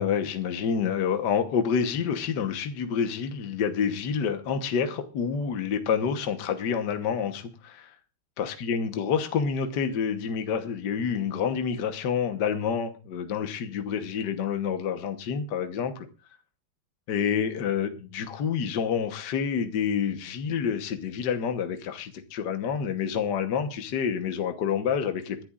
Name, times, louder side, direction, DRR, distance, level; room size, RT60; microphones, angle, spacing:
voice 1, 0.0-7.9 8.4-16.1 17.1-25.4, left 7 dB, 60° left, 7 dB, 1.7 m, -28 dB
26.5 x 11.5 x 2.4 m, 0.32 s
omnidirectional pair, 2.2 m